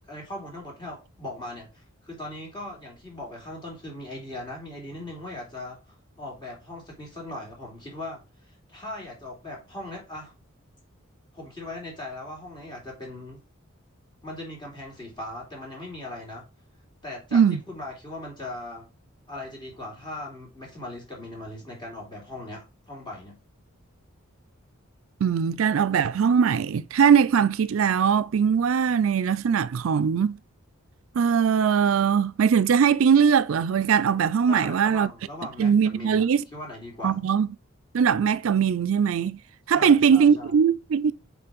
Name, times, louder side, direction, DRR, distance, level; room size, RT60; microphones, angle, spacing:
voice 1, 0.1-10.3 11.3-13.4 14.2-16.5 17.0-18.9 19.3-23.4 34.5-36.3 36.5-37.2 39.7-40.5, left 1 dB, 20° left, 3.0 m, -39 dB
voice 2, 25.2-30.4 31.1-35.1 35.6-36.4 37.0-37.5 37.9-39.4 39.7-41.1, right 7 dB, 70° right, 0.4 m, -21 dB
5.7 x 4.3 x 5.2 m
head